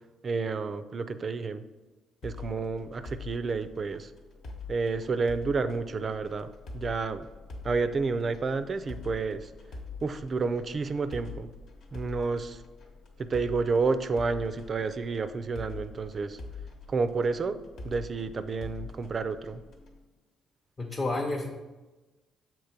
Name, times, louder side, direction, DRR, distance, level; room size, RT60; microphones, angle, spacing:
voice 1, 0.2-1.6 2.2-4.1 4.7-6.5 6.7-7.3 7.6-9.5 10.0-11.5 11.9-12.6 13.2-16.4 16.9-19.6, right 4 dB, 35° right, 12 dB, 0.4 m, -30 dB
sound 1, 2.2-20.0, left 4 dB, 65° left, 1.1 m, -44 dB
voice 2, 20.8-21.5, left 2 dB, 30° left, -1 dB, 0.7 m, -30 dB
6.7 x 3.0 x 5.8 m, 1.2 s
cardioid pair, 105°, 0 cm